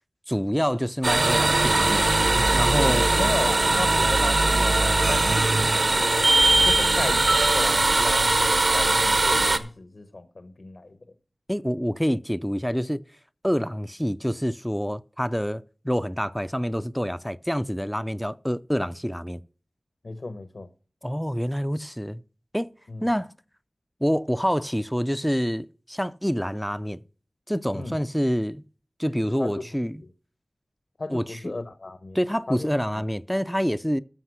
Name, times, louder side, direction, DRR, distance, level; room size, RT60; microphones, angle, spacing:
voice 1, 0.3-2.1 2.5-3.1 11.5-13.0 13.4-19.4 21.0-22.2 22.5-22.7 23.0-23.3 24.0-27.0 27.5-28.6 29.0-30.0 31.1-31.4 32.1-34.0, equal, ahead, 0.4 m, -27 dB
sound 1, 1.0-9.6, right 2 dB, 60° right, 1.0 m, -20 dB
voice 2, 2.9-6.3 6.6-11.0 20.0-20.7 22.9-23.1 27.7-28.0 29.4-29.7 30.0-30.1 31.0-32.2 32.5-32.7 33.0-33.1, left 2 dB, 65° left, 0.9 m, -34 dB
14.0 x 5.4 x 6.1 m
wide cardioid pair, 70°, 0 cm